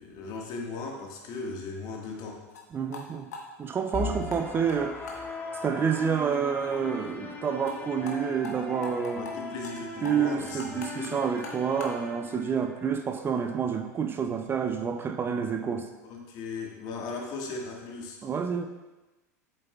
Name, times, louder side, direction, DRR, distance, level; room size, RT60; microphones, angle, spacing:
voice 1, 0.0-2.4 9.1-11.1 16.1-18.2, left 4 dB, 50° left, 0 dB, 1.7 m, -37 dB
sound 1, 2.5-2.6 2.9-3.0 3.3-4.4 4.7-4.8 5.1-5.2 5.5-5.6 5.9-6.0 6.3-6.4 6.7-6.8 7.0-7.1 7.4-7.8 8.1-8.2 8.4-8.5 8.8-9.3 9.6-9.8 10.0-12.0, left 4 dB, 75° left, 1.2 m, -42 dB
voice 2, 2.7-3.3 3.6-5.3 5.6-9.3 10.0-15.9 18.2-18.7, right 7 dB, 25° right, 7 dB, 0.5 m, -28 dB
sound 2, 3.9-12.9, left 3 dB, 20° left, 1.1 m, -39 dB
8.1 x 7.5 x 2.4 m, 1.1 s
hypercardioid pair, 90°, 9 cm